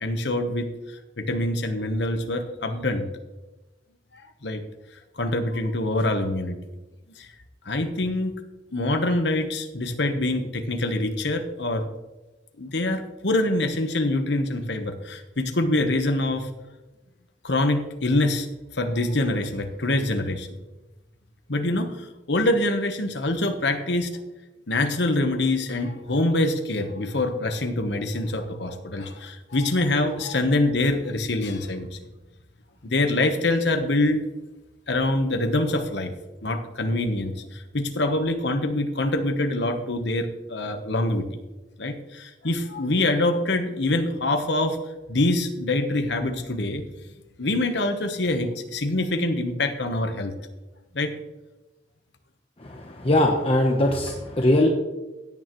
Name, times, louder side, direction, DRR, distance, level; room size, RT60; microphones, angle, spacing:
voice 1, 0.0-3.1 4.1-4.6 5.2-6.6 7.2-7.3 7.6-8.4 8.7-11.9 12.6-16.5 17.4-18.5 18.7-20.6 21.5-24.1 24.7-31.9 32.8-34.2 34.9-36.1 36.4-41.3 41.8-44.8 45.1-46.8 47.4-50.3 50.9-51.1, left 2 dB, 65° left, 6 dB, 1.2 m, -25 dB
voice 2, 52.6-54.7, left 1 dB, 30° left, 1 dB, 1.0 m, -21 dB
16.5 x 9.1 x 3.1 m, 1.1 s
head